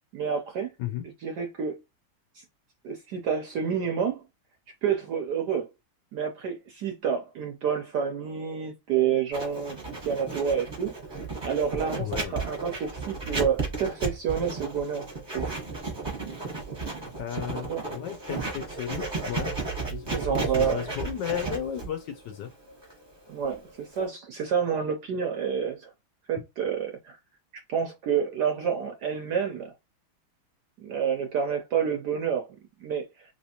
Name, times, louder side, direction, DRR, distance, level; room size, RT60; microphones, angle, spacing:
voice 1, 0.1-0.7 1.2-1.8 2.3-2.4 2.8-4.2 4.8-5.7 6.1-9.8 10.0-10.9 11.4-15.1 15.3-15.4 17.7-17.8 20.1-20.8 23.3-25.9 26.3-27.2 27.5-29.7 30.8-33.1, right 7 dB, 70° right, 1.0 m, -29 dB
Writing, 9.3-24.1, right 3 dB, 20° right, 0.8 m, -34 dB
voice 2, 12.0-12.3 17.2-19.5 19.9-22.5, left 10 dB, 70° left, 1.1 m, -34 dB
3.2 x 2.9 x 2.8 m
omnidirectional pair, 2.3 m